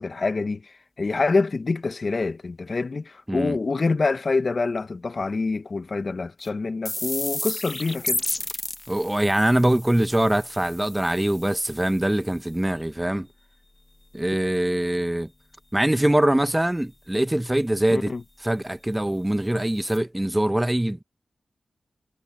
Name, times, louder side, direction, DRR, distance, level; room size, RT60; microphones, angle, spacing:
voice 1, 0.0-8.2 17.9-18.2, left 3 dB, 60° left, 1.2 m, -26 dB
sound 1, 6.4-6.5 6.9-12.4 19.4-19.5 19.8-20.0, left 2 dB, 30° left, 1.4 m, -33 dB
voice 2, 8.9-13.3 14.1-15.3 15.7-18.1 18.4-21.0, right 1 dB, 15° right, 1.2 m, -23 dB
cardioid pair, 50°, 0 cm